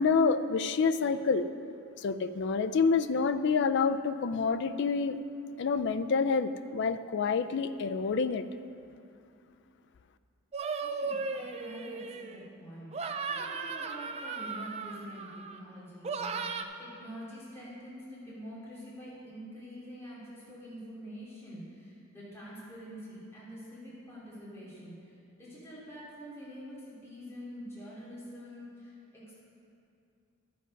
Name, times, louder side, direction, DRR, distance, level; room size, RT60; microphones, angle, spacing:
voice 1, 0.0-1.5 2.0-5.2 5.6-8.5, left 5 dB, 55° left, 12 dB, 0.4 m, -28 dB
sound 1, 10.5-12.5 12.9-15.6 16.0-16.6, right 4 dB, 30° right, 0.4 m, -36 dB
voice 2, 10.8-15.3 15.5-29.5, equal, 15° left, -9 dB, 2.7 m, -46 dB
11.5 x 7.8 x 5.2 m, 2.5 s
head